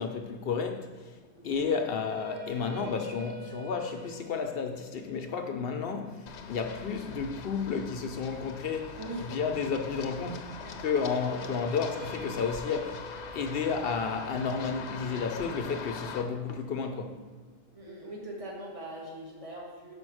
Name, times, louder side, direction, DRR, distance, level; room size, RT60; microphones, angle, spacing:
voice 1, 0.0-1.2 1.4-9.0 9.2-10.5 10.8-17.2, left 5 dB, 65° left, 0.7 m, -32 dB
sound 1, 1.4-7.6 10.8-16.9, right 2 dB, 60° right, 0.8 m, -47 dB
Run, 6.3-16.2, left 5 dB, 85° left, 1.0 m, -42 dB
voice 2, 9.0-9.3 10.6-10.7 17.7-19.9, right 1 dB, 30° right, 1.5 m, -41 dB
5.2 x 5.2 x 6.2 m
omnidirectional pair, 1.1 m